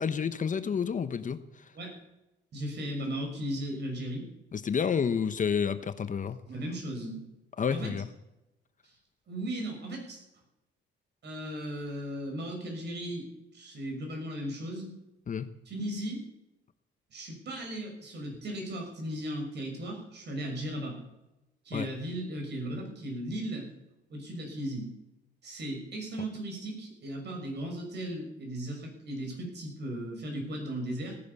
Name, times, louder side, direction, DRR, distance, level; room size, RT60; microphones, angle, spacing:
voice 1, 0.0-1.4 4.5-6.4 7.6-8.0 15.3-15.5 21.7-21.9, left 6 dB, 40° left, 11 dB, 1.0 m, -29 dB
voice 2, 2.5-4.3 6.5-7.2 7.7-7.9 8.8-8.9 9.3-10.2 11.2-13.3 13.5-14.9 15.7-16.2 17.1-21.0 21.6-23.7 24.1-24.9 25.4-31.2, right 1 dB, 60° right, 2 dB, 6.1 m, -36 dB
17.0 x 10.5 x 7.0 m, 0.95 s
cardioid pair, 90°, 20 cm